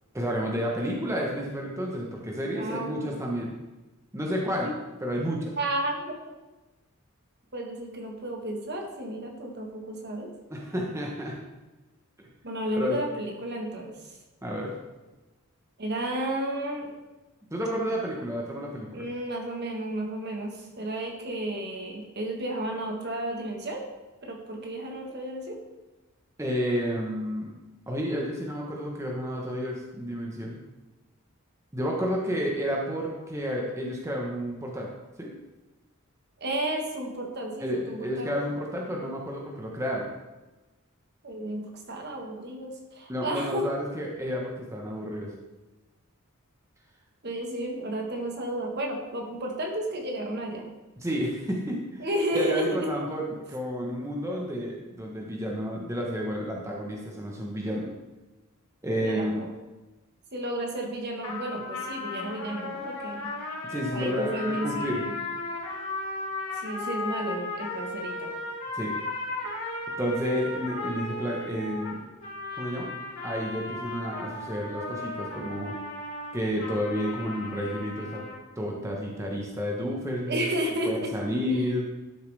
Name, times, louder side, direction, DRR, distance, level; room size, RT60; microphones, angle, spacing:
voice 1, 0.1-3.5 4.1-4.7 5.0-5.5 10.5-11.4 12.2-12.3 12.8-13.0 14.4-14.7 17.5-19.0 26.4-27.5 27.9-30.6 31.7-34.9 35.2-35.3 37.6-40.1 43.1-45.3 51.0-52.1 52.3-57.9 58.8-59.4 63.7-65.0 68.7-69.0 70.0-72.0 72.6-72.9 73.2-75.8 76.3-78.2 78.6-80.4 80.9-81.9, equal, 15° right, -2 dB, 1.1 m, -31 dB
voice 2, 2.5-3.2 4.6-4.7 5.6-5.9 7.5-10.3 12.4-14.1 15.8-16.9 18.9-23.8 24.2-25.6 36.4-38.3 41.2-43.7 47.2-50.7 52.0-52.9 59.0-59.5 60.3-63.3 63.9-65.1 66.5-68.3 80.3-81.1 81.5-81.6, right 1 dB, 50° right, 1 dB, 1.4 m, -32 dB
sound 1, 61.2-78.4, left 2 dB, 70° left, 3.4 m, -36 dB
11.5 x 6.6 x 3.4 m, 1.1 s
head